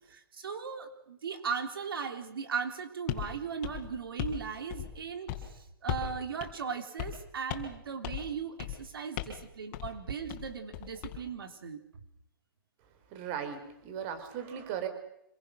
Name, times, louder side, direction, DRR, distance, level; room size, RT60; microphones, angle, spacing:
voice 1, 0.1-11.8, right 6 dB, 80° right, 7 dB, 3.4 m, -37 dB
sound 1, 3.1-3.3 3.6-4.4 4.7-5.0 5.3-5.5 5.9-6.1 6.4-6.5 7.0-7.2 7.5-7.8 8.0-8.3 8.6-8.8 9.2-9.4 9.7-9.9 10.3-11.2, left 12 dB, 35° left, 4.1 m, -37 dB
voice 2, 13.1-14.9, right 8 dB, 30° right, 9 dB, 3.8 m, -37 dB
26.5 x 23.0 x 6.4 m, 0.80 s
hypercardioid pair, 160°, 12 cm